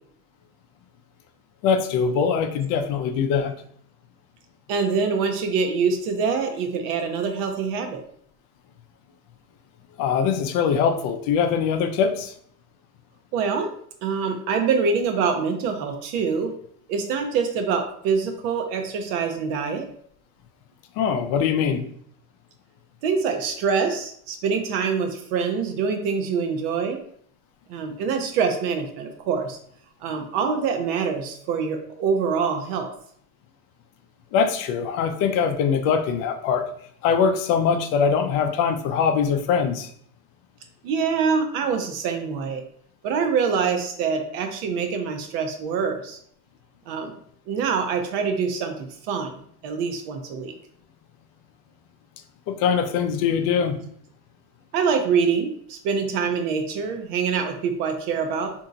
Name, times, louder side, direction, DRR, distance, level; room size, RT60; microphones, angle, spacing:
voice 1, 1.6-3.5 10.0-12.3 21.0-21.8 34.3-36.7 37.0-39.9 52.5-53.8, left 6 dB, 50° left, 7 dB, 0.5 m, -22 dB
voice 2, 4.7-8.0 13.3-13.7 14.0-16.5 16.9-19.9 23.0-27.0 27.7-29.6 30.0-32.9 40.8-42.6 43.0-46.2 46.9-47.1 47.5-49.3 49.6-50.5 54.7-58.5, right 5 dB, 55° right, 5 dB, 0.6 m, -25 dB
2.8 x 2.6 x 2.4 m, 0.62 s
supercardioid pair, 115°, 44 cm